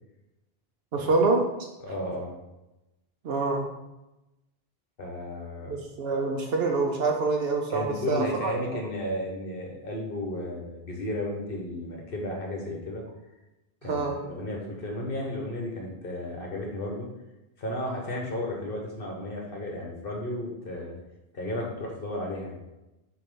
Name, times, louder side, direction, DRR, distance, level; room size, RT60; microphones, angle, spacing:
voice 1, 0.9-1.4 3.2-3.6 5.7-8.6 13.8-14.2, right 3 dB, 70° right, 2 dB, 0.9 m, -26 dB
voice 2, 1.8-2.3 5.0-5.9 7.7-13.0 13.8-17.1 17.6-20.9 21.3-22.6, left 1 dB, 60° left, -1 dB, 1.2 m, -34 dB
6.8 x 2.8 x 5.3 m, 0.98 s
omnidirectional pair, 1.1 m